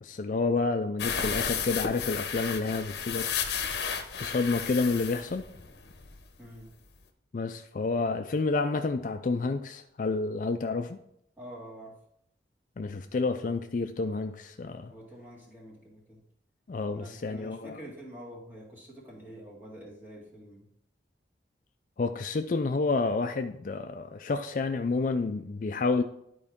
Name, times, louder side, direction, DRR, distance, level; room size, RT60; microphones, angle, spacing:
voice 1, 0.0-3.3 4.1-5.4 7.3-11.0 12.8-14.9 16.7-17.8 22.0-26.0, left 3 dB, 45° left, 7 dB, 0.4 m, -29 dB
sound 1, 1.0-6.3 6.6-6.7 7.0-7.1, left 7 dB, 65° left, 0.9 m, -33 dB
voice 2, 6.4-6.7 11.4-12.0 14.9-16.2 16.9-20.7, equal, 10° right, -5 dB, 2.0 m, -46 dB
11.0 x 4.6 x 3.6 m, 0.75 s
head